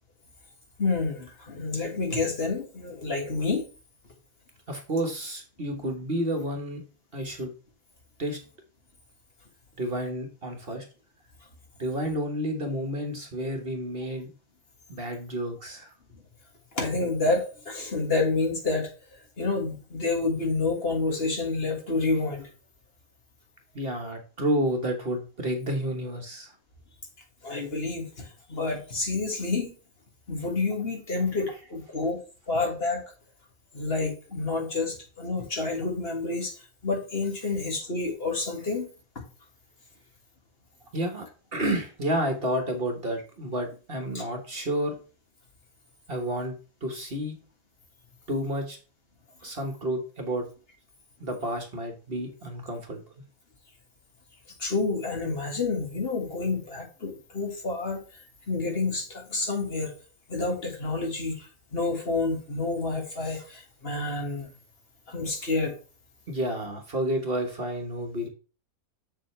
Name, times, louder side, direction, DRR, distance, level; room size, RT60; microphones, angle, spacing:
voice 1, 0.8-3.7 16.1-16.2 16.7-22.5 27.4-29.7 30.3-32.2 32.5-33.0 33.7-38.9 44.1-44.2 54.6-58.2 58.5-59.9 60.3-64.5 65.1-65.7, left 3 dB, 45° left, 1 dB, 2.1 m, -29 dB
voice 2, 4.7-6.8 7.1-7.5 8.2-8.4 9.8-10.8 11.8-14.3 14.9-15.9 23.7-26.5 40.9-44.9 46.1-46.5 46.8-47.4 48.3-48.8 49.4-50.4 51.2-53.0 66.3-68.3, right 1 dB, 40° right, 4 dB, 1.5 m, -30 dB
7.5 x 7.0 x 3.3 m, 0.35 s
omnidirectional pair, 1.5 m